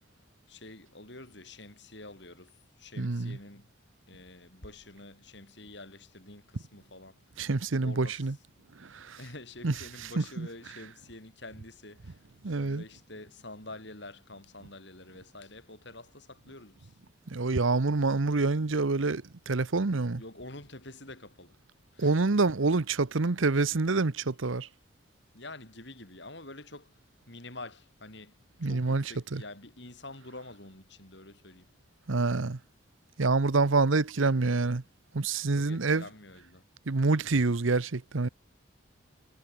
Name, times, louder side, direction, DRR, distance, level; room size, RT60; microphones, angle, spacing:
voice 1, 0.5-2.5 2.8-3.7 4.1-7.1 7.8-8.2 9.2-12.1 12.5-16.9 20.2-21.5 21.9-22.1 25.3-26.9 27.3-28.4 28.6-31.7 35.5-36.6, left 2 dB, 60° left, 6.4 m, -47 dB
voice 2, 3.0-3.4 7.4-8.4 8.8-9.2 9.6-10.9 12.4-12.8 17.3-20.2 22.0-24.7 28.6-29.4 32.1-32.6 33.2-34.8 35.1-36.1 36.9-38.3, right 3 dB, 80° right, 0.9 m, -27 dB
head